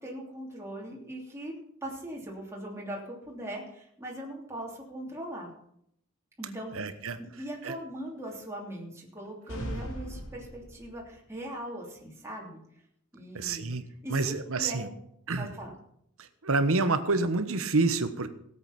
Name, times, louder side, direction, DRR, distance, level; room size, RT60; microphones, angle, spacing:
voice 1, 0.0-1.5 1.8-5.5 6.4-6.7 7.2-12.6 13.1-13.7 14.0-14.9 15.4-15.7, right 1 dB, 15° right, -3 dB, 3.1 m, -40 dB
voice 2, 6.7-7.2 7.6-7.8 13.3-13.8 14.1-14.9 15.3-15.5 16.2-18.3, right 3 dB, 65° right, 11 dB, 1.2 m, -28 dB
sound 1, 9.5-11.2, equal, 65° left, 3.3 m, -38 dB
17.0 x 8.2 x 5.9 m, 0.72 s
head